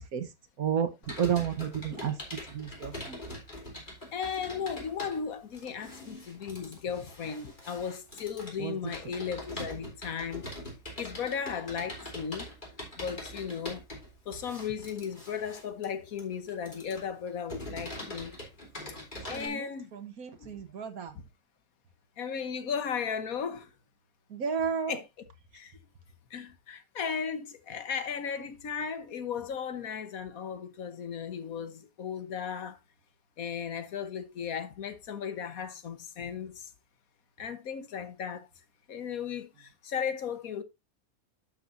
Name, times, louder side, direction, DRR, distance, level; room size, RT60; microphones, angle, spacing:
voice 1, 0.6-0.9 1.2-2.1 2.5-3.2 8.6-8.8 19.3-21.1 24.3-25.0, right 8 dB, 75° right, 1.7 m, -32 dB
Computer keyboard, 1.0-19.5, left 1 dB, 30° left, 3.7 m, -43 dB
voice 2, 4.1-10.5 11.0-12.5 13.0-13.8 14.2-18.4 19.3-19.9 20.4-20.5 21.1-21.3 22.2-23.7 24.9-25.0 25.5-25.8 26.3-32.8 33.4-36.7 37.4-38.5 38.9-40.6, left 7 dB, 70° left, 1.5 m, -36 dB
11.5 x 6.8 x 2.6 m
omnidirectional pair, 1.5 m